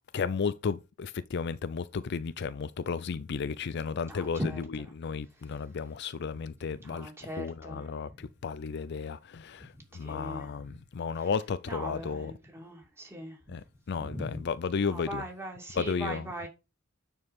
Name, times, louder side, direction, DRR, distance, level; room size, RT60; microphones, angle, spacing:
voice 1, 0.1-4.4 4.9-7.1 7.4-12.3 13.5-15.2 15.8-16.2, left 5 dB, 55° left, 0.4 m, -33 dB
voice 2, 4.1-4.9 5.4-5.5 6.8-7.9 8.2-8.3 10.0-10.5 11.2-11.3 11.7-13.6 14.0-14.4 14.8-16.5, equal, 10° right, 2.6 m, -40 dB
9.7 x 4.6 x 5.3 m
head